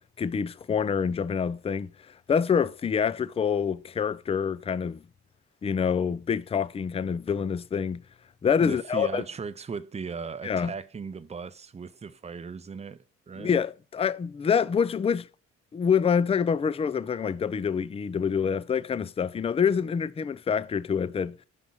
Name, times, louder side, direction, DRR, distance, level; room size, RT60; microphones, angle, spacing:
voice 1, 0.0-5.0 5.6-8.0 8.4-9.2 10.4-10.7 13.4-15.3 15.7-21.4, left 6 dB, 20° left, 0.4 m, -26 dB
voice 2, 8.6-13.5, right 5 dB, 20° right, 0.6 m, -37 dB
5.4 x 5.4 x 6.1 m
cardioid pair, 90°, 30 cm